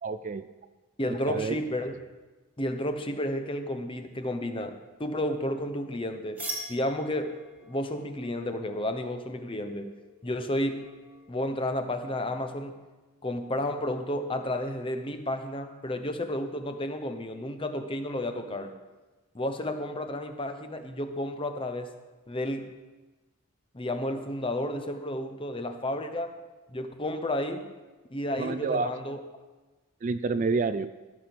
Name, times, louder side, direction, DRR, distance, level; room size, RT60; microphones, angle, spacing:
voice 1, 0.0-0.5 1.1-1.6 28.4-28.9 30.0-30.9, right 4 dB, 35° right, 12 dB, 0.3 m, -29 dB
voice 2, 1.0-2.0 2.6-6.4 6.7-9.9 10.2-10.8 11.3-12.8 13.2-18.7 19.3-21.9 22.3-22.7 23.7-26.3 26.7-27.7 28.1-29.2, left 1 dB, 25° left, 7 dB, 0.8 m, -32 dB
sound 1, 6.4-11.9, equal, 5° right, 1.7 m, -44 dB
14.5 x 6.9 x 6.1 m, 1.2 s
head